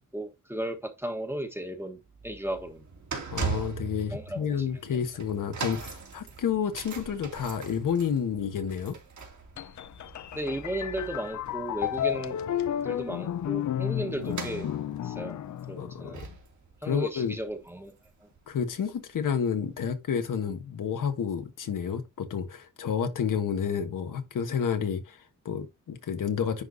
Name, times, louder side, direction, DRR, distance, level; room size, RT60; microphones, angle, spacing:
voice 1, 0.1-2.9 4.1-4.6 4.9-5.1 10.3-12.4 12.8-14.7 15.0-15.4 15.7-16.3 16.8-17.9 18.2-18.3, right 1 dB, 5° right, 1.2 m, -35 dB
sound 1, 2.0-18.4 18.6-18.9 19.7-19.8, right 5 dB, 65° right, 2.6 m, -41 dB
voice 2, 3.3-9.0 15.8-16.1 16.8-17.4 18.5-26.6, left 7 dB, 80° left, 1.4 m, -30 dB
sound 2, 9.6-16.3, left 10 dB, 65° left, 0.6 m, -32 dB
10.5 x 4.0 x 2.7 m
wide cardioid pair, 120°, 31 cm